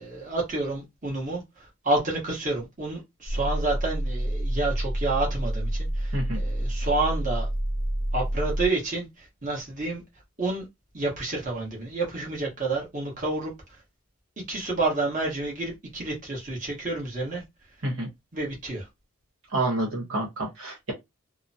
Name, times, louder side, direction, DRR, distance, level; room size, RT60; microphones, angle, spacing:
voice 1, 0.0-7.5 8.1-10.0 10.4-10.6 10.9-13.5 14.5-17.4 18.3-18.9, right 2 dB, 35° right, 1.2 m, -29 dB
sound 1, 3.3-8.7, right 1 dB, 60° right, 0.6 m, -28 dB
voice 2, 19.5-20.9, right 2 dB, 75° right, 1.1 m, -28 dB
3.0 x 2.0 x 2.7 m
head